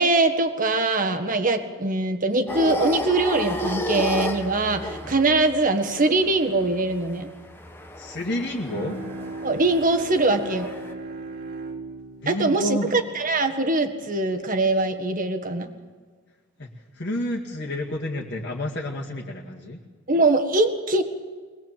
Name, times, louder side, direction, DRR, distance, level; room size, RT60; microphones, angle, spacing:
voice 1, 0.0-7.3 9.4-10.7 12.3-15.7 20.1-21.0, right 2 dB, 40° right, 6 dB, 1.7 m, -22 dB
sound 1, 2.5-10.9, left 1 dB, 10° left, 1.3 m, -33 dB
voice 2, 8.0-9.0 12.2-12.9 16.6-16.7 17.0-19.8, left 1 dB, 55° left, -4 dB, 2.1 m, -29 dB
Bowed string instrument, 8.6-14.1, right 2 dB, 60° right, 2.4 m, -37 dB
23.0 x 19.5 x 7.6 m, 1.5 s
head